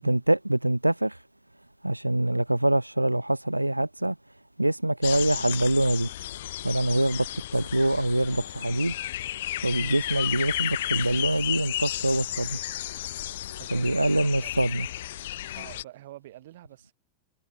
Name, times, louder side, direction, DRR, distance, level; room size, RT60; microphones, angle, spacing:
voice 1, 0.0-1.2 1.8-4.1 4.6-6.1 6.6-7.3 7.5-8.9 9.6-12.6 13.7-14.9, right 1 dB, 85° right, 1.1 m, -24 dB
sound 1, 5.0-15.8, left 13 dB, 55° left, 1.0 m, -33 dB
voice 2, 13.6-14.5 15.5-16.9, right 15 dB, 55° right, 7.3 m, -46 dB
figure-of-eight pair, 90°, 0 cm